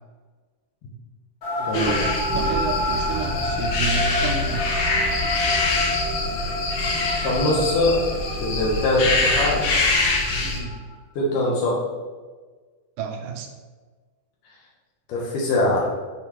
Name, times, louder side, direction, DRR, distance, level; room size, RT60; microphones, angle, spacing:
sound 1, 1.4-10.9, left 1 dB, 45° left, 2.1 m, -30 dB
voice 1, 1.6-4.9 10.4-10.9 13.0-13.5, right 6 dB, 80° right, 4 dB, 2.1 m, -31 dB
sound 2, 1.7-10.6, left 2 dB, 65° left, 1.7 m, -24 dB
voice 2, 7.2-8.0 8.4-9.7 11.2-11.8 15.1-15.9, left 2 dB, 85° left, -4 dB, 2.6 m, -22 dB
8.3 x 4.0 x 3.0 m, 1.4 s
omnidirectional pair, 3.7 m